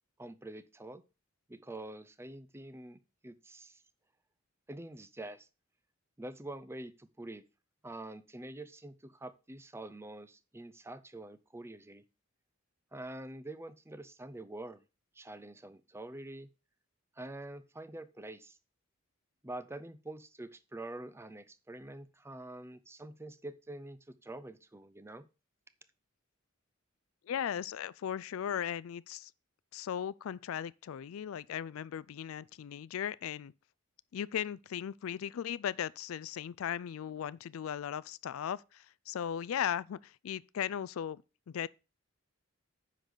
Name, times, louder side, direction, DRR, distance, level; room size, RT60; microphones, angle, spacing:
voice 1, 0.2-1.0 1.5-3.8 4.7-5.5 6.2-7.4 7.8-12.0 12.9-14.8 15.1-16.5 17.2-18.6 19.4-25.3, right 1 dB, 10° right, 0.5 m, -46 dB
voice 2, 27.3-29.3 29.7-33.5 34.1-41.7, left 9 dB, 80° left, 0.4 m, -37 dB
9.7 x 3.9 x 6.6 m
head